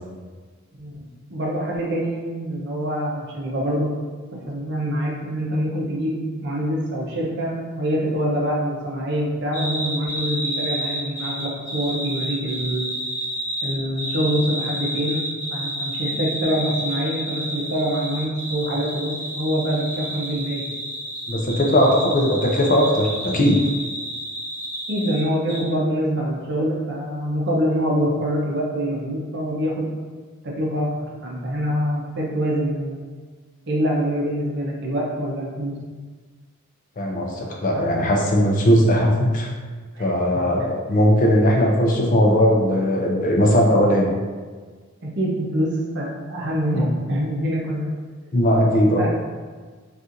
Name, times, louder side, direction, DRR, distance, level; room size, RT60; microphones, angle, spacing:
voice 1, 1.3-3.9 4.3-12.9 13.6-20.6 21.9-22.1 24.9-29.9 30.4-33.0 33.7-35.8 37.7-37.9 39.9-40.4 45.0-47.9 49.0-49.1, equal, 50° right, -3 dB, 0.6 m, -25 dB
sound 1, 9.5-25.2 25.5-25.6, equal, 15° left, 0.9 m, -30 dB
voice 2, 21.3-23.6 37.0-39.5 40.0-44.2 48.3-49.1, equal, 40° left, 0 dB, 0.4 m, -18 dB
4.1 x 2.4 x 2.5 m, 1.5 s
head